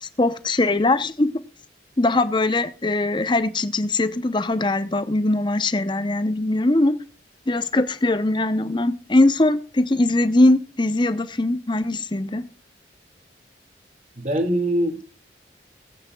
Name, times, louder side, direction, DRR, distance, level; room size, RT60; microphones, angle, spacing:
voice 1, 0.0-1.4 2.0-7.0 7.5-12.4, left 2 dB, 25° left, 11 dB, 0.8 m, -21 dB
voice 2, 14.2-15.0, right 1 dB, 40° right, 5 dB, 2.2 m, -23 dB
18.5 x 8.7 x 2.3 m, 0.36 s
head